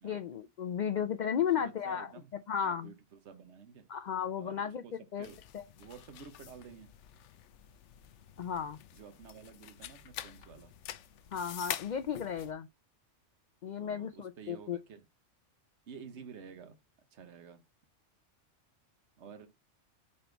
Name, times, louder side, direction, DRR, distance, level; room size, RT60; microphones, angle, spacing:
voice 1, 0.0-2.1 2.5-2.9 3.9-4.8 5.1-5.3 5.5-5.6 8.4-8.8 11.3-12.7 13.6-14.8, left 8 dB, 60° left, 0.5 m, -34 dB
voice 2, 1.6-2.3 2.6-3.9 4.4-5.4 5.8-6.9 8.9-10.7 13.8-15.0 15.9-16.8 17.1-17.6 19.2-19.5, right 6 dB, 70° right, 1.3 m, -51 dB
sound 1, 5.2-12.5, left 11 dB, 80° left, 0.9 m, -46 dB
5.2 x 4.2 x 4.5 m
omnidirectional pair, 1.2 m